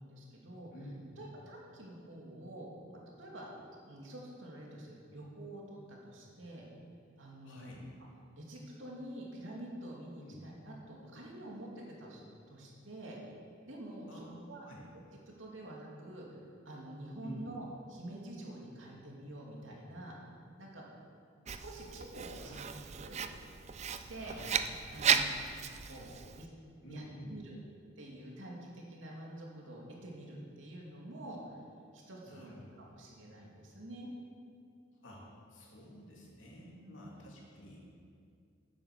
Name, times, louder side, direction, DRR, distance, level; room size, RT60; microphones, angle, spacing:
voice 1, 0.0-0.7 1.2-2.7 3.2-3.5 3.8-6.6 7.2-7.8 8.4-13.2 13.6-14.7 15.3-16.3 16.6-20.2 20.6-20.9 21.5-22.6 23.0-23.2 23.8-24.3 24.9-25.3 25.8-26.5 26.9-27.5 28.0-31.6 31.9-32.5 32.9-34.1 36.8-37.0, right 1 dB, 80° right, -2 dB, 2.6 m, -47 dB
voice 2, 0.7-1.4 7.4-7.8 10.2-10.4 14.1-14.4 14.6-14.8 17.2-17.5 22.4-22.8 24.2-24.6 26.8-27.3 32.2-32.6 35.0-38.0, equal, 85° left, -3 dB, 3.0 m, -50 dB
Writing, 21.5-26.5, right 7 dB, 35° right, 0.5 m, -35 dB
10.5 x 9.2 x 6.8 m, 2.3 s
head